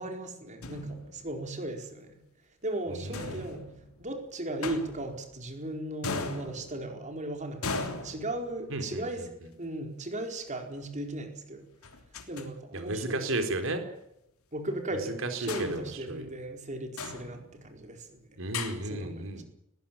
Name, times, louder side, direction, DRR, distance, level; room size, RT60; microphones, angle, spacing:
voice 1, 0.0-2.2 2.6-3.7 4.0-9.3 9.6-11.7 12.3-13.2 14.5-18.4 18.8-19.4, right 1 dB, 35° right, 5 dB, 4.5 m, -37 dB
sound 1, 0.6-1.5 3.1-4.1 4.6-5.5 6.0-7.1 7.6-8.9 10.2-10.3 11.8-12.5 12.8-12.9 13.3-13.4 15.5-16.6 17.0-17.8 18.5-18.8, left 3 dB, 80° left, 3.3 m, -38 dB
voice 2, 2.9-3.4 8.7-9.3 12.7-13.8 15.2-16.3 18.4-19.4, right 2 dB, 65° right, 8 dB, 4.1 m, -34 dB
20.0 x 17.0 x 8.9 m, 0.82 s
head